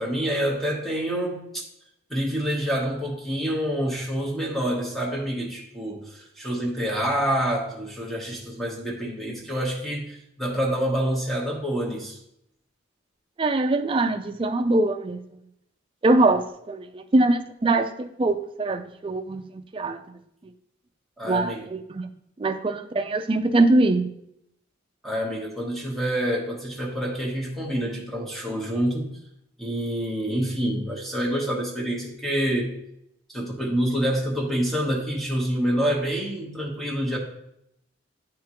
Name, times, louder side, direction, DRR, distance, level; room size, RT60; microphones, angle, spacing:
voice 1, 0.0-1.4 2.1-12.2 21.2-21.6 25.0-29.1 29.6-32.7 33.3-37.2, equal, ahead, 1.0 m, -27 dB
voice 2, 13.4-15.2 16.0-20.5 21.3-22.1 22.4-24.2, right 2 dB, 25° right, 0.3 m, -23 dB
9.3 x 3.5 x 2.9 m
head